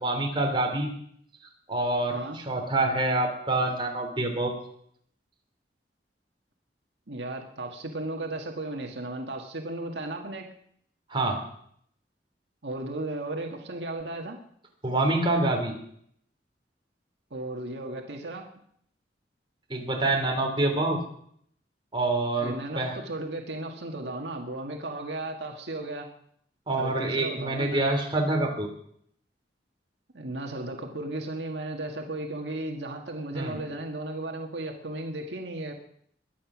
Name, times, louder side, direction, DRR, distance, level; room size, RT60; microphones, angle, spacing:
voice 1, 0.0-0.9 1.7-4.6 11.1-11.4 14.8-15.7 19.7-21.0 21.9-23.0 26.7-28.7 33.3-33.6, right 2 dB, 30° right, 1 dB, 3.2 m, -26 dB
voice 2, 7.1-10.5 12.6-14.4 17.3-18.5 22.4-26.1 26.8-27.9 30.1-35.7, right 2 dB, 75° right, 2 dB, 1.8 m, -35 dB
22.5 x 9.1 x 6.2 m, 0.68 s
head